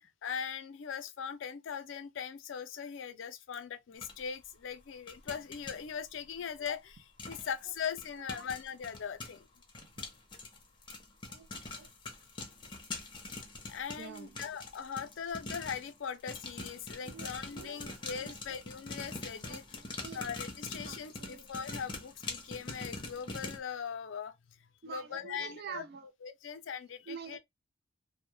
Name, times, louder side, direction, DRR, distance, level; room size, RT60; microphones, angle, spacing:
voice 1, 0.0-9.4 13.7-19.8 20.1-24.3 24.8-25.8 26.2-27.4, left 7 dB, 80° left, 0.4 m, -40 dB
sound 1, 4.0-4.1 5.1-5.8 6.7-6.8 7.2-7.5 7.8-15.9 16.3-23.6, left 3 dB, 25° left, 0.6 m, -43 dB
voice 2, 14.0-14.4 17.0-18.4 19.5-20.2 20.8-21.5 24.8-26.1 27.1-27.4, right 6 dB, 55° right, 0.4 m, -47 dB
2.2 x 2.1 x 3.0 m
head